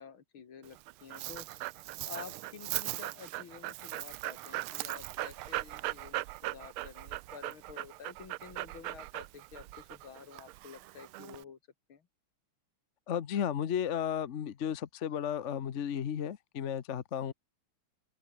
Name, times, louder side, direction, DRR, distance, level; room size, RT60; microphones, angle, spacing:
voice 1, 0.0-1.5 2.0-11.6 11.9-12.1, left 6 dB, 65° left, 3.0 m, -50 dB
Dog, 0.6-11.4, right 17 dB, 80° right, 1.5 m, -39 dB
voice 2, 13.1-17.3, left 9 dB, 50° left, 0.9 m, -34 dB
open air
omnidirectional pair, 2.4 m